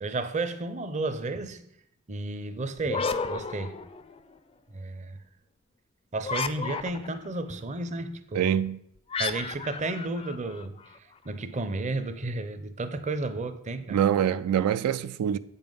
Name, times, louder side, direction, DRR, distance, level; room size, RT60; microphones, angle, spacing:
voice 1, 0.0-1.6 2.1-3.8 4.7-5.2 6.1-8.6 9.2-10.8 11.2-14.0, right 2 dB, 30° right, 0.5 m, -32 dB
sound 1, 2.8-4.4 6.2-7.3 9.1-11.0, left 4 dB, 25° left, 0.4 m, -33 dB
voice 2, 8.3-8.8 13.9-15.4, right 9 dB, 90° right, 0.3 m, -25 dB
7.8 x 5.4 x 5.4 m
head